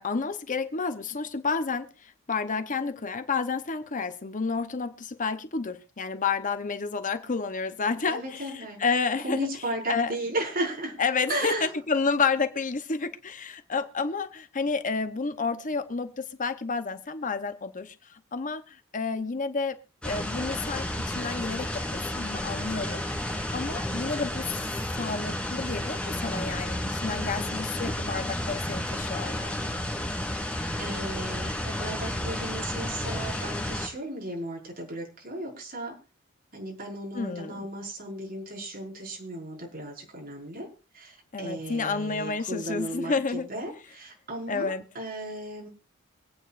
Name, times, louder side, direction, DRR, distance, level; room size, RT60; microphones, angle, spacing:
voice 1, 0.0-9.5 9.9-10.1 11.0-19.8 20.0-24.6 25.0-29.6 37.1-37.7 41.3-43.5 44.5-44.8, left 4 dB, 40° left, 0.8 m, -30 dB
voice 2, 8.1-8.8 9.2-10.9 11.3-11.7 27.1-27.6 30.4-35.9 36.5-40.7 40.9-45.7, right 1 dB, 45° right, 5.3 m, -35 dB
sound 1, 20.0-33.9, left 1 dB, 5° left, 3.3 m, -32 dB
25.0 x 9.1 x 2.5 m
head